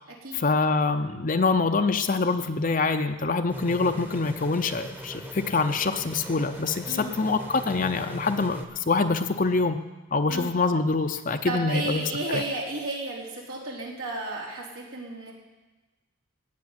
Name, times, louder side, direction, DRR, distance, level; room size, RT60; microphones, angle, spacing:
voice 1, 0.3-9.8 10.1-12.0 12.3-12.4, left 3 dB, 40° left, 7 dB, 0.6 m, -25 dB
sound 1, 3.5-8.6, equal, 10° right, 1.0 m, -40 dB
voice 2, 11.4-15.3, right 2 dB, 85° right, -3 dB, 3.8 m, -33 dB
17.0 x 6.1 x 9.7 m, 1.2 s
head